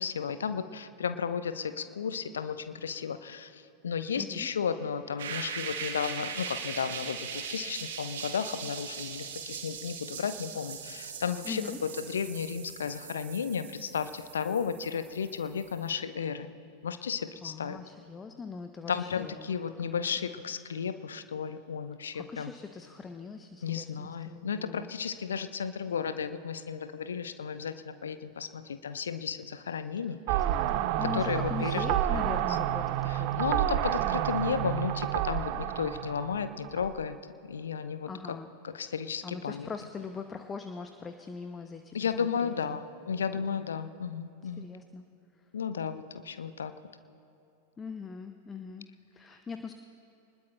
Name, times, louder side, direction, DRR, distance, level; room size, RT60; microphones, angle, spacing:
voice 1, 0.0-16.5 16.8-17.8 18.9-22.5 23.6-30.4 31.0-32.4 33.1-37.2 37.5-38.4 38.6-39.7 41.9-44.7 45.5-46.7, left 6 dB, 70° left, 11 dB, 0.7 m, -34 dB
voice 2, 4.2-4.5 11.4-11.8 17.4-19.5 19.8-20.3 22.1-24.9 30.5-33.6 38.1-38.5 39.2-42.8 43.3-43.6 44.6-45.0 47.8-49.7, left 5 dB, 20° left, 7 dB, 0.6 m, -41 dB
sound 1, 5.2-15.9, right 6 dB, 60° right, 1.5 m, -40 dB
sound 2, 30.3-37.0, right 12 dB, 45° right, 0.5 m, -29 dB
26.0 x 20.0 x 2.2 m, 2.8 s
figure-of-eight pair, 90°, 0 cm